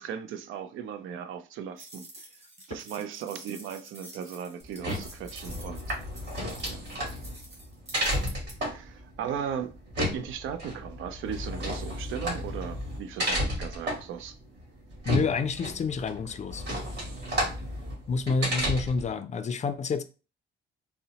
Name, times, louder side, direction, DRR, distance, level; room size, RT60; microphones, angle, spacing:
voice 1, 0.0-2.2 2.7-6.0 6.6-6.8 8.6-14.4 18.5-18.8, right 8 dB, 80° right, 0.4 m, -37 dB
sound 1, 1.8-8.5, right 1 dB, 30° right, 1.4 m, -48 dB
sound 2, 4.6-19.1, equal, 60° right, 1.8 m, -33 dB
voice 2, 15.0-16.6 18.1-20.0, left 4 dB, 35° left, 0.4 m, -28 dB
3.8 x 2.0 x 2.8 m
cardioid pair, 90°, 20 cm